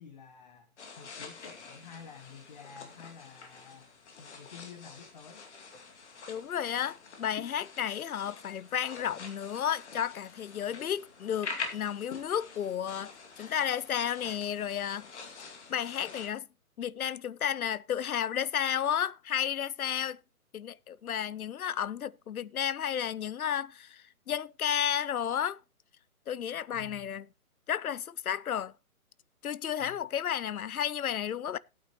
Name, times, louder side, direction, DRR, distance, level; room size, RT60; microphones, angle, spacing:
voice 1, 0.0-3.9 4.2-5.5 26.7-27.1 29.8-30.0, left 6 dB, 30° left, 1.0 m, -50 dB
sound 1, 0.8-16.3, left 4 dB, 50° left, 2.3 m, -46 dB
voice 2, 6.3-15.1 15.7-16.5 16.8-20.2 20.5-25.6 26.3-27.3 27.7-28.7 29.4-31.6, left 9 dB, 70° left, 0.7 m, -32 dB
17.0 x 8.8 x 3.0 m
hypercardioid pair, 160°, 45 cm